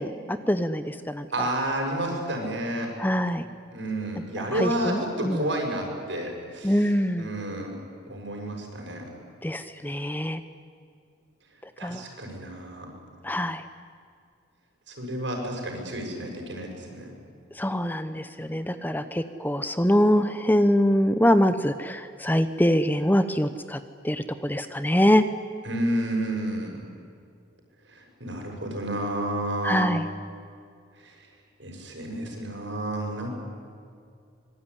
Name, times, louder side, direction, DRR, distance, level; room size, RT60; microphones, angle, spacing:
voice 1, 0.0-1.5 3.0-3.4 4.5-5.4 6.6-7.3 9.4-10.4 11.8-12.0 13.2-13.6 17.6-23.8 24.0-25.2 29.6-30.1, equal, 10° left, 11 dB, 0.7 m, -24 dB
voice 2, 1.3-2.9 3.7-6.9 7.2-7.8 8.1-9.0 11.8-12.9 14.9-17.1 25.6-26.8 27.9-29.9 31.0-31.1 31.6-33.3, right 1 dB, 70° right, 2 dB, 6.9 m, -30 dB
25.5 x 22.5 x 9.9 m, 2.4 s
head